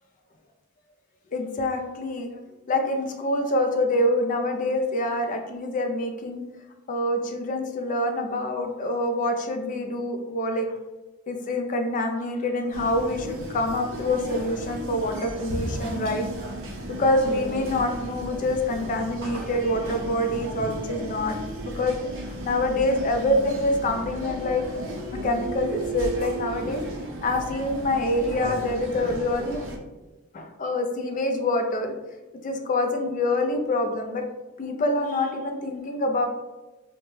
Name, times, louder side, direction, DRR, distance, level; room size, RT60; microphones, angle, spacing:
voice 1, 1.3-2.3 2.7-6.4 6.9-10.7 11.3-16.3 16.9-21.4 21.6-22.0 22.4-24.6 25.1-26.8 27.2-29.6 30.3-31.9 32.4-34.2 34.6-36.3, left 1 dB, 40° left, 5 dB, 0.4 m, -26 dB
sound 1, 12.7-29.8, right 1 dB, 65° right, 0.6 m, -34 dB
2.7 x 2.2 x 3.0 m, 1.1 s
head